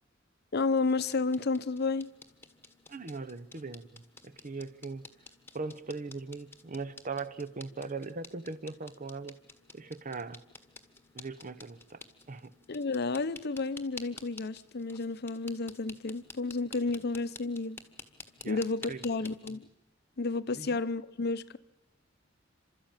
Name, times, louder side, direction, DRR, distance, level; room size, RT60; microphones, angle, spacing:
voice 1, 0.5-2.1 12.7-17.8 18.5-19.7 20.2-21.6, left 3 dB, 55° left, 0.7 m, -31 dB
sound 1, 0.7-19.5, left 3 dB, 10° left, 1.4 m, -52 dB
voice 2, 2.9-5.1 5.5-9.4 9.7-10.4 11.1-12.0 12.3-12.5 18.4-18.6 18.9-19.0 20.6-20.8, right 4 dB, 40° right, 0.8 m, -40 dB
29.0 x 13.0 x 8.9 m
head